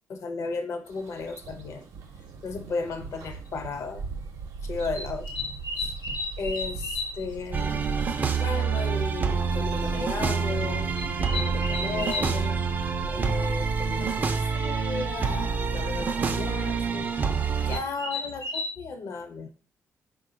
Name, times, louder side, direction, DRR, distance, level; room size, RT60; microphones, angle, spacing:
voice 1, 0.1-1.9 2.4-4.1 4.6-5.3 5.8-5.9 6.4-7.9 8.3-10.9 11.3-12.6 13.0-17.2 17.7-19.5, left 4 dB, 60° left, 6 dB, 0.6 m, -34 dB
sound 1, 0.9-13.9, right 5 dB, 85° right, 0.6 m, -39 dB
sound 2, 1.0-1.1 2.5-2.6 3.3-3.5 4.9-7.2 7.5-7.7 8.0-8.1 8.4-8.5 8.7-8.8 9.7-9.9 10.9-12.3 14.4-14.5 14.8-15.1 17.0-17.1 17.7-18.7, left 3 dB, 85° left, 1.0 m, -34 dB
sound 3, 7.5-17.8, right 5 dB, 30° right, 0.3 m, -27 dB
4.4 x 2.2 x 3.8 m, 0.41 s
cardioid pair, 125°, 6 cm